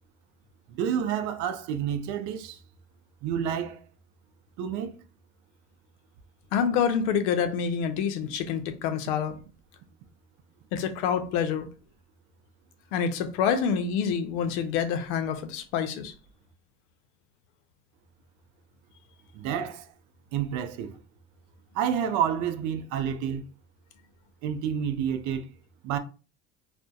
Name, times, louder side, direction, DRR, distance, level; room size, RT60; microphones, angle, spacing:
voice 1, 0.7-2.6 3.2-3.8 4.6-5.0 19.3-19.9 20.3-20.9 21.7-23.4 24.4-25.5 25.8-26.0, right 8 dB, 60° right, 0.5 m, -29 dB
voice 2, 6.5-9.4 10.7-11.7 12.9-16.1, left 7 dB, 85° left, 0.5 m, -27 dB
2.6 x 2.1 x 2.3 m
supercardioid pair, 100°, 33 cm